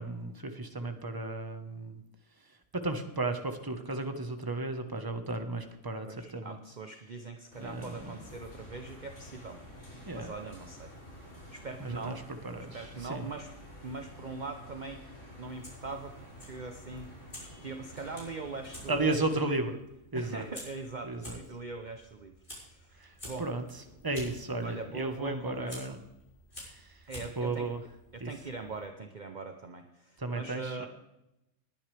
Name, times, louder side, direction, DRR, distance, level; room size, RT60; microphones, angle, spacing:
voice 1, 0.0-2.0 2.7-6.6 7.6-8.1 10.0-10.3 11.8-12.1 12.4-13.2 18.9-19.7 20.1-20.4 21.0-21.4 23.0-23.6 24.0-26.0 26.7-26.9 27.4-27.8 28.2-28.3 30.2-30.9, right 2 dB, 20° right, 6 dB, 1.2 m, -34 dB
voice 2, 6.1-9.6 9.9-10.9 11.5-12.2 12.7-13.5 13.8-15.0 15.4-16.2 16.5-17.1 17.4-19.7 20.1-23.5 24.6-26.0 27.1-27.7 28.1-30.9, right 3 dB, 40° right, 5 dB, 0.9 m, -42 dB
sound 1, 7.5-19.4, equal, 85° left, 5.7 m, -50 dB
Fire, 15.4-28.8, equal, 40° left, 5.7 m, -51 dB
20.5 x 9.7 x 3.4 m, 0.89 s
omnidirectional pair, 1.2 m